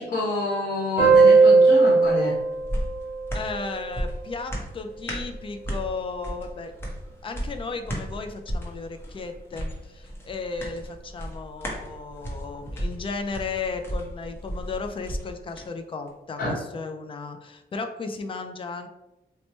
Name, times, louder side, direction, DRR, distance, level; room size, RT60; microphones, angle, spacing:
voice 1, 0.0-2.4 16.4-16.5, left 2 dB, 70° left, -6 dB, 1.1 m, -28 dB
sound 1, 1.0-4.1, right 4 dB, 55° right, 1.2 m, -18 dB
sound 2, 2.0-15.7 16.1-16.2, equal, 15° left, 0.8 m, -35 dB
voice 2, 3.3-6.7 7.2-18.9, left 4 dB, 30° left, 6 dB, 0.4 m, -35 dB
2.9 x 2.2 x 4.2 m, 0.97 s
wide cardioid pair, 150°, 17 cm